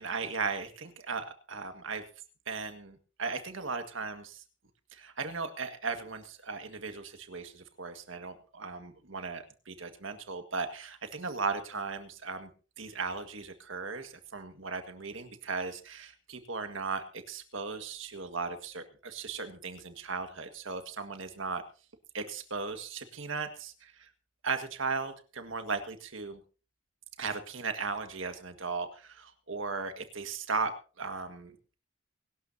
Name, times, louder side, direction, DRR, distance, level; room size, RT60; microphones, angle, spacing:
voice 1, 0.0-2.0 2.5-4.4 4.9-12.5 12.8-21.6 22.1-24.1 24.4-26.4 27.2-31.6, right 4 dB, 75° right, 7 dB, 1.8 m, -37 dB
23.5 x 12.5 x 2.8 m, 0.36 s
head